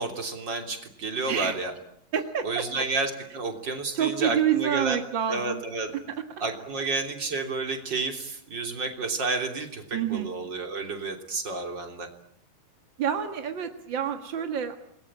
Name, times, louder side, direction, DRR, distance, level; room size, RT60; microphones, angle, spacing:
voice 1, 0.0-1.7 2.4-5.0 5.3-5.9 6.4-12.1, right 3 dB, 30° right, 5 dB, 3.4 m, -30 dB
voice 2, 2.1-2.8 3.9-5.6 6.1-6.2 9.9-10.3 13.0-14.8, right 9 dB, 50° right, 6 dB, 1.5 m, -28 dB
28.0 x 22.0 x 8.8 m, 0.69 s
omnidirectional pair, 4.4 m